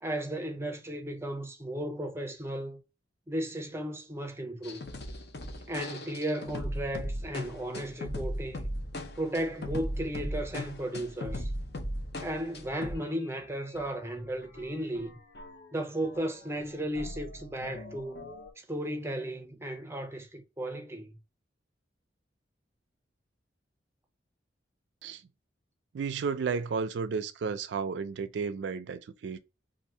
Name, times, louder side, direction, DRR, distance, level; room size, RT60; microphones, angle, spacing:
voice 1, 0.0-2.8 3.3-4.8 5.7-8.6 9.1-11.5 12.2-15.2 15.7-18.2 18.6-21.1, right 1 dB, 15° right, 0.5 m, -35 dB
sound 1, 4.6-13.1 13.4-13.5 13.7-15.7 16.0-18.5, left 1 dB, 60° left, 0.7 m, -38 dB
voice 2, 25.9-29.4, right 5 dB, 70° right, 0.4 m, -33 dB
2.7 x 2.6 x 4.2 m
head